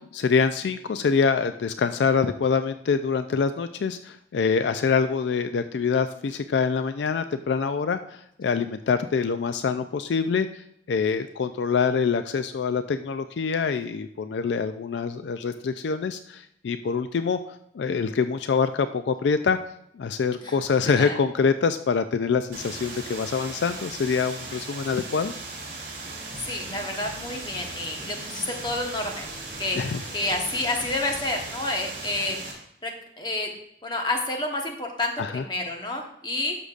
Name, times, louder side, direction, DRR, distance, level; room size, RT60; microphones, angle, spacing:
voice 1, 0.0-17.4 17.7-19.6 20.0-25.3 29.8-30.0 35.2-35.4, left 5 dB, 75° left, 10 dB, 0.4 m, -25 dB
voice 2, 20.9-21.2 26.4-29.3 29.6-29.8 30.1-32.4 32.8-33.5 33.8-36.6, left 2 dB, 25° left, 2 dB, 1.1 m, -29 dB
sound 1, 22.5-32.5, right 3 dB, 50° right, 2.6 m, -38 dB
sound 2, 26.3-31.5, left 1 dB, 45° left, 2.2 m, -47 dB
11.5 x 6.7 x 2.5 m, 0.75 s
head